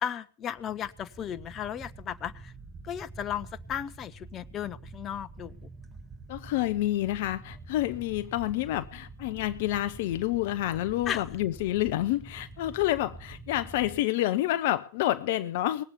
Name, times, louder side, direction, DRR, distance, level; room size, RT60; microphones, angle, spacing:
voice 1, 0.0-2.5 2.8-5.7 11.1-11.2, left 9 dB, 35° left, 1.0 m, -35 dB
sound 1, 0.6-14.0, right 3 dB, 15° right, 2.9 m, -47 dB
voice 2, 6.3-15.8, left 14 dB, 65° left, 0.6 m, -28 dB
20.0 x 8.0 x 7.3 m
hypercardioid pair, 85°, 0 cm